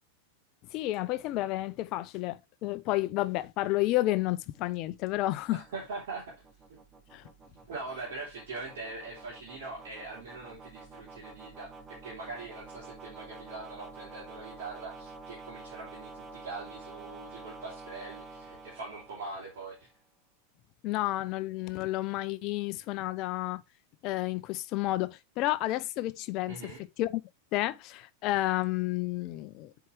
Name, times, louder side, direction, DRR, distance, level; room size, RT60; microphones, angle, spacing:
voice 1, 0.7-5.6 7.1-7.2 20.8-23.6 24.0-26.7 27.0-27.2 27.5-29.7, left 17 dB, 40° left, 0.6 m, -31 dB
sound 1, 3.8-19.9, right 3 dB, 20° right, 1.1 m, -49 dB
voice 2, 5.5-6.4 6.7-6.8 7.7-19.9 26.5-26.8, right 3 dB, 55° right, 3.3 m, -42 dB
8.5 x 4.7 x 3.5 m
figure-of-eight pair, 90°, 0 cm